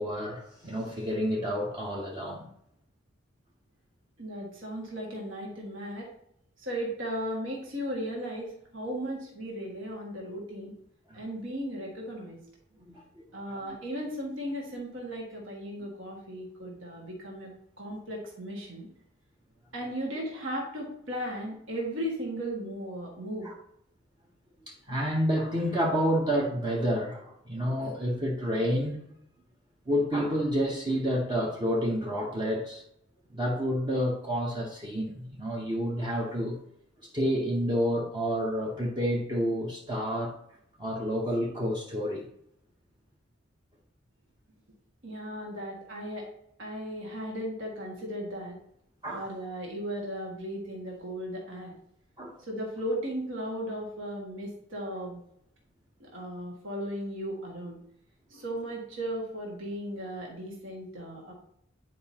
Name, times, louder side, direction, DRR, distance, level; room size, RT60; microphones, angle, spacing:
voice 1, 0.0-2.5 11.1-11.2 12.9-13.6 23.4-23.5 24.6-29.0 29.9-32.8 33.3-36.6 37.1-40.3 40.8-42.3 49.0-49.3 52.2-52.4, equal, 20° right, 0.8 m, -29 dB
voice 2, 4.2-6.1 6.6-10.7 11.1-12.4 13.3-17.5 17.8-18.9 19.7-23.5 45.0-46.3 46.6-48.6 49.1-51.7 52.4-55.2 56.0-57.8 58.3-61.3, equal, 65° right, 1.7 m, -36 dB
9.3 x 4.8 x 2.8 m
head